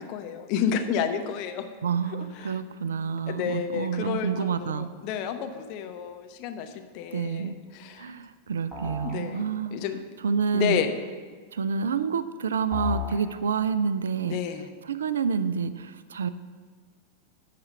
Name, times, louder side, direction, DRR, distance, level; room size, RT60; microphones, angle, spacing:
voice 1, 0.0-1.7 2.1-2.6 3.3-8.1 9.0-9.4 9.7-10.0 10.5-11.0 14.2-14.7, left 8 dB, 45° left, 7 dB, 0.8 m, -31 dB
voice 2, 1.8-4.9 7.1-7.6 8.0-9.7 10.2-10.8 11.5-14.4 14.9-16.3, right 6 dB, 65° right, 13 dB, 0.4 m, -28 dB
sound 1, 8.7-9.2 12.7-13.2, left 6 dB, 10° right, 2.9 m, -32 dB
8.6 x 6.0 x 6.7 m, 1.5 s
figure-of-eight pair, 90°, 0 cm